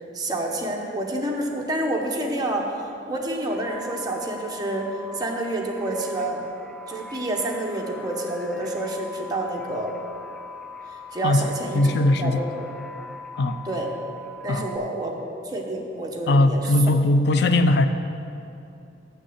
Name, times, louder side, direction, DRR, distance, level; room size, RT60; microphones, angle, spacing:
voice 1, 0.1-2.7 3.1-4.9 5.2-6.4 6.9-10.0 11.1-11.8 12.2-12.7 13.7-13.9 14.4-15.1 15.4-16.6, right 1 dB, 20° right, 0 dB, 1.0 m, -28 dB
sound 1, 3.5-14.8, left 2 dB, 5° left, 0.4 m, -41 dB
voice 2, 11.2-12.4 13.4-13.6 14.5-14.7 16.3-17.9, left 2 dB, 65° left, 9 dB, 0.5 m, -20 dB
7.3 x 6.4 x 7.9 m, 2.7 s
head